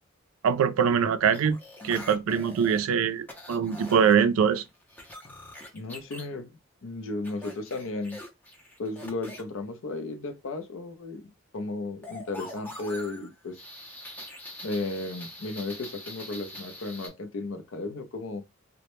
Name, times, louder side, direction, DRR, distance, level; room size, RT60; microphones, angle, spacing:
voice 1, 0.4-1.6 1.8-4.6, right 7 dB, 80° right, 0.3 m, -23 dB
sound 1, 1.3-2.8 3.3-4.1 4.5-6.3 7.2-9.4 12.0-17.1, left 1 dB, 10° left, 0.5 m, -43 dB
voice 2, 5.7-6.5 6.8-8.2 8.8-11.2 11.5-13.6 14.6-18.4, left 2 dB, 70° left, 0.5 m, -34 dB
2.1 x 2.0 x 2.9 m
head